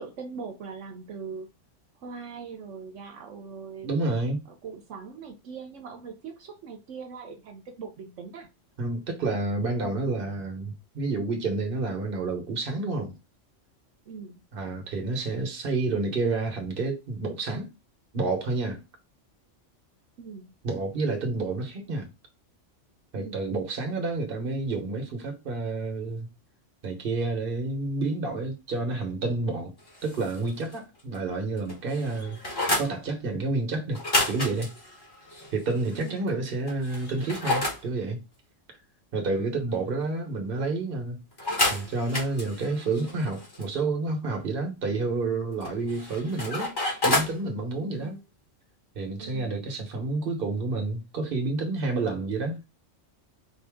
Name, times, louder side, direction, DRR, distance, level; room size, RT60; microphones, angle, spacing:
voice 1, 0.0-1.5 2.0-4.0 4.6-8.5 14.1-14.4 20.2-20.5 23.1-23.4 35.9-36.2 39.3-39.9 47.8-48.2 49.2-49.7, right 5 dB, 80° right, 1.1 m, -41 dB
voice 2, 3.8-4.4 8.8-13.2 14.5-17.7 18.1-18.8 20.6-22.1 23.1-26.3 26.8-29.7 30.0-34.0 34.3-34.7 35.5-38.2 39.1-41.2 41.7-46.7 47.0-48.2 48.9-52.6, right 3 dB, 50° right, 1.2 m, -29 dB
sound 1, 29.9-30.8 31.1-31.2 31.6-32.9 33.9-36.1 36.7-37.8 41.4-43.6 45.6-47.4, left 2 dB, 20° left, 1.1 m, -30 dB
4.4 x 2.7 x 3.4 m
omnidirectional pair, 1.3 m